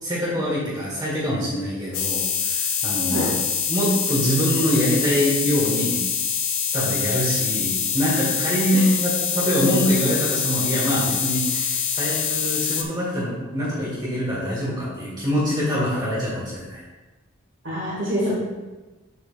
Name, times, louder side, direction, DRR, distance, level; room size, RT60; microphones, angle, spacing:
voice 1, 0.0-3.3 3.7-6.0 6.7-16.8, equal, 20° right, -7 dB, 1.6 m, -24 dB
sound 1, 1.9-12.8, left 7 dB, 80° left, 0.8 m, -25 dB
voice 2, 17.6-18.3, equal, 65° right, -9 dB, 2.4 m, -25 dB
7.8 x 6.8 x 2.5 m, 1.2 s
head